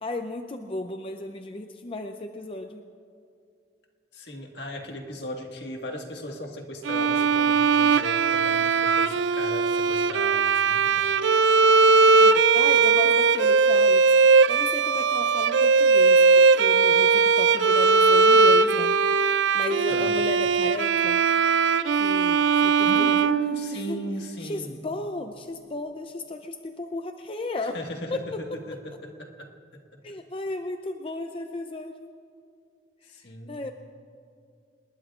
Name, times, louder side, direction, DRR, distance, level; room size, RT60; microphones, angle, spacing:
voice 1, 0.0-2.8 12.2-18.9 19.5-21.2 21.9-23.3 23.7-24.0 24.4-27.8 28.1-28.4 30.0-32.1 33.5-33.7, left 2 dB, 30° left, 6 dB, 0.5 m, -35 dB
voice 2, 4.1-11.1 19.9-20.2 22.8-24.8 27.7-29.8 33.0-33.6, equal, 70° left, 2 dB, 1.7 m, -37 dB
Bowed string instrument, 6.8-24.1, right 4 dB, 85° right, 0.4 m, -20 dB
27.5 x 20.0 x 2.5 m, 2.4 s
head